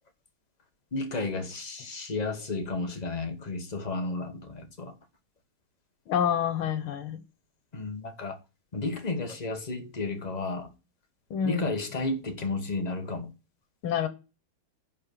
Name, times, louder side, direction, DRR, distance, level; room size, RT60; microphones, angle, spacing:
voice 1, 0.9-4.9 7.7-8.4 8.7-10.7 11.4-13.3, left 3 dB, 25° left, 0.9 m, -32 dB
voice 2, 6.1-7.2 11.3-11.7 13.8-14.1, left 8 dB, 85° left, 2.0 m, -27 dB
11.0 x 4.5 x 6.8 m
omnidirectional pair, 2.3 m